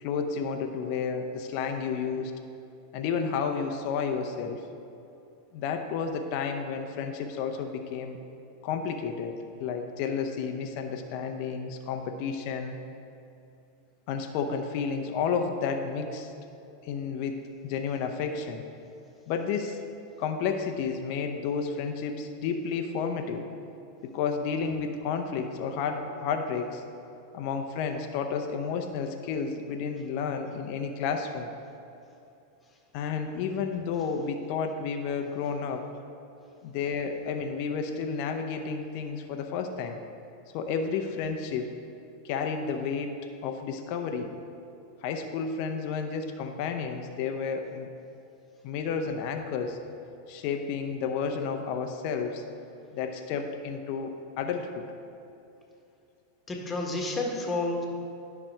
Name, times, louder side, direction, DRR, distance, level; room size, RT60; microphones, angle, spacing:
voice 1, 0.0-2.3 2.9-4.7 5.5-8.2 8.6-12.8 14.1-16.3 16.8-18.6 19.3-19.8 20.2-23.5 24.0-26.8 27.3-31.5 32.9-35.9 36.6-40.0 40.5-41.8 42.2-44.3 45.0-47.9 48.6-49.8 50.3-52.4 52.9-54.9, left 5 dB, 55° left, 6 dB, 0.7 m, -31 dB
voice 2, 56.5-57.9, left 2 dB, 20° left, 1 dB, 1.6 m, -30 dB
10.0 x 6.1 x 4.4 m, 2.7 s
hypercardioid pair, 95°, 0 cm